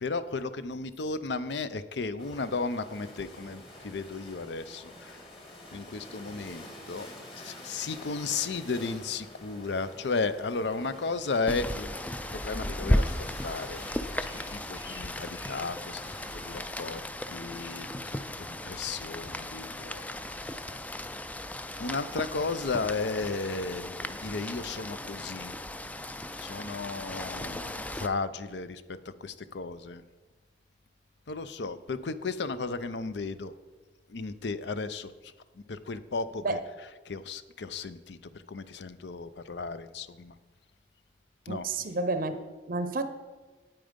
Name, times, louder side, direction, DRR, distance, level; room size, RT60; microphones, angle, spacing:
voice 1, 0.0-5.2 5.7-7.1 7.4-11.9 12.3-13.8 14.2-16.0 16.4-17.0 17.3-18.2 18.6-20.0 20.4-20.5 21.8-25.5 26.4-28.8 29.2-30.0 31.3-33.5 34.1-35.1 35.7-38.2 38.5-40.3 41.5-41.7, left 4 dB, 70° left, 0.6 m, -34 dB
sound 1, 2.2-16.7, left 1 dB, 30° left, 2.0 m, -48 dB
sound 2, 10.6-10.8 11.7-11.8 12.4-12.6 12.9-13.1 13.7-15.9 16.2-16.4 16.8-17.0 17.3-17.4, left 2 dB, 85° left, 3.8 m, -52 dB
Rain, 11.5-28.1, left 1 dB, 10° left, 0.3 m, -35 dB
voice 2, 41.5-42.4 42.7-43.0, right 3 dB, 50° right, 0.6 m, -30 dB
9.1 x 8.9 x 5.1 m
head